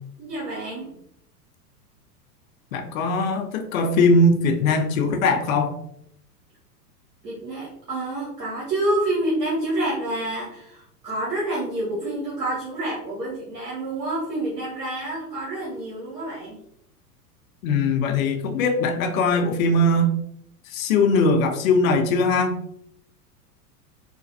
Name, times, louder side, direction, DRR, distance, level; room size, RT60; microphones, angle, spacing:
voice 1, 0.2-0.9 7.2-16.6, right 1 dB, 90° right, -6 dB, 1.1 m, -28 dB
voice 2, 2.7-5.7 17.6-20.1 20.7-22.6, left 2 dB, 60° left, 6 dB, 0.6 m, -20 dB
3.2 x 2.2 x 2.6 m, 0.74 s
hypercardioid pair, 105°, 48 cm